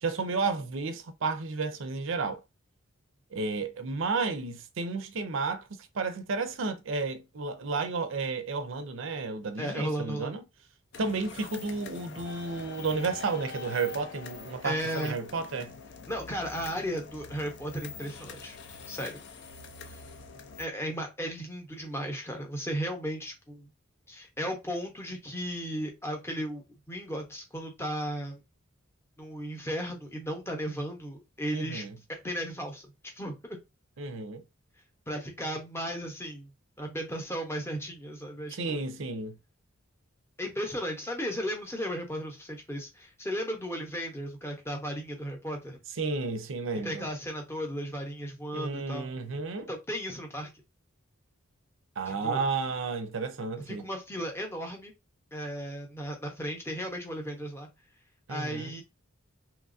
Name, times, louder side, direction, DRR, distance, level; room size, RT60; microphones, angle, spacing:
voice 1, 0.0-2.4 3.3-5.6 5.9-10.4 11.0-15.7 31.5-31.9 34.0-34.4 38.5-39.4 46.0-47.1 48.5-49.7 52.0-53.8 58.3-58.7, right 4 dB, 65° right, 0.5 m, -32 dB
voice 2, 9.6-10.3 14.6-15.2 16.1-18.6 18.9-19.2 19.9-20.0 20.6-23.7 24.1-28.4 29.2-33.6 35.1-36.5 36.8-38.8 40.4-45.8 46.8-49.1 49.7-50.5 52.1-52.4 53.7-54.9 55.3-57.7 58.3-58.8, equal, 10° left, 0.7 m, -35 dB
sound 1, 10.9-20.7, left 5 dB, 55° left, 0.4 m, -45 dB
3.0 x 2.3 x 2.5 m
head